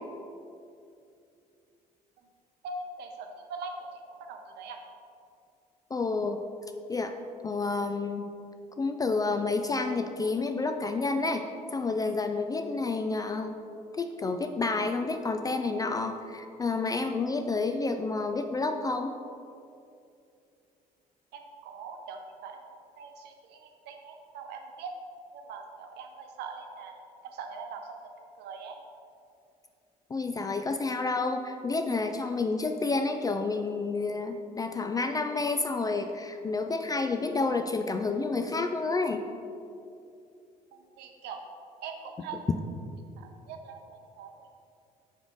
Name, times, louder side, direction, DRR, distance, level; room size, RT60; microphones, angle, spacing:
voice 1, 2.6-4.8 21.3-22.6 23.0-24.9 25.3-28.1 28.4-28.8 40.7-41.4 41.8-42.4 43.2-44.5, right 4 dB, 55° right, 4 dB, 0.7 m, -42 dB
voice 2, 5.9-6.4 6.9-7.1 7.4-8.3 8.8-11.5 11.7-13.6 14.0-19.1 30.1-39.2, left 3 dB, 20° left, 6 dB, 0.3 m, -29 dB
6.3 x 5.0 x 3.7 m, 2.6 s
figure-of-eight pair, 50°, 21 cm